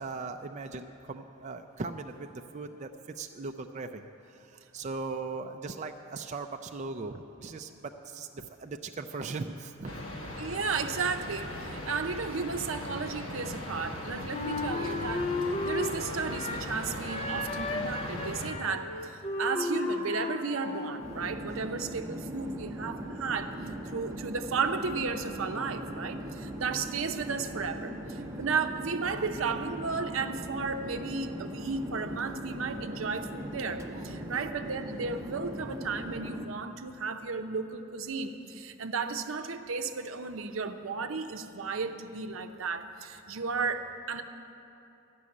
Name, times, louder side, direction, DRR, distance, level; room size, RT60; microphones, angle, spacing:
voice 1, 0.0-10.0, right 3 dB, 35° right, 5 dB, 0.4 m, -39 dB
sound 1, 9.9-18.5, left 1 dB, 65° left, 1.2 m, -39 dB
voice 2, 10.4-15.3 15.7-19.1 19.4-44.2, right 4 dB, 75° right, 7 dB, 0.7 m, -34 dB
Wind instrument woodwind instrument, 14.3-16.7 17.1-21.1, left 2 dB, 30° left, 0.5 m, -34 dB
Chatter / Fixed-wing aircraft airplane, 21.0-36.5, right 1 dB, 15° right, 0.8 m, -40 dB
13.0 x 6.2 x 9.6 m, 2.9 s
head